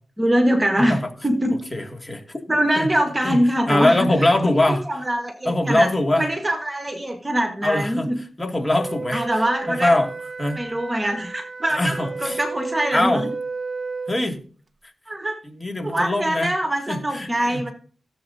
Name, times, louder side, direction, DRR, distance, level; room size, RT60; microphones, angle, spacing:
voice 1, 0.2-1.6 2.5-4.3 4.9-5.9 6.2-8.2 9.1-9.9 10.5-13.3 15.1-15.4 15.8-17.7, right 1 dB, 20° right, 4 dB, 1.4 m, -23 dB
voice 2, 1.7-2.4 2.8-2.9 3.2-3.4 3.7-4.8 5.4-6.3 7.6-8.1 8.4-10.1 10.4-10.6 11.7-12.4 12.9-13.2 14.1-14.4 15.6-16.5 16.9-17.7, left 1 dB, 20° left, 2 dB, 2.4 m, -22 dB
Wind instrument woodwind instrument, 8.7-14.2, right 4 dB, 40° right, 0.7 m, -32 dB
17.0 x 7.3 x 2.8 m, 0.42 s
cardioid pair, 75°, 0 cm